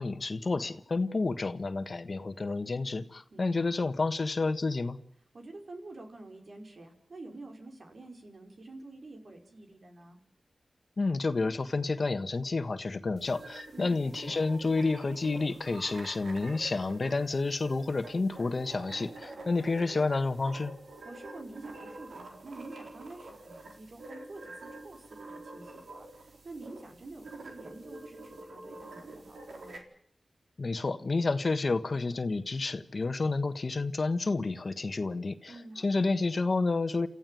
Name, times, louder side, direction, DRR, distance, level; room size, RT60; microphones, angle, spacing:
voice 1, 0.0-5.0 11.0-20.7 30.6-35.5 35.8-37.1, left 3 dB, 55° left, 10 dB, 1.5 m, -30 dB
voice 2, 3.3-3.8 5.3-10.2 13.7-14.4 19.3-19.7 21.0-29.8 35.5-36.1, right 2 dB, 65° right, 3 dB, 5.4 m, -48 dB
sound 1, 13.2-29.8, right 2 dB, 80° right, 4.0 m, -47 dB
28.5 x 14.5 x 9.3 m, 0.64 s
cardioid pair, 60°, 0 cm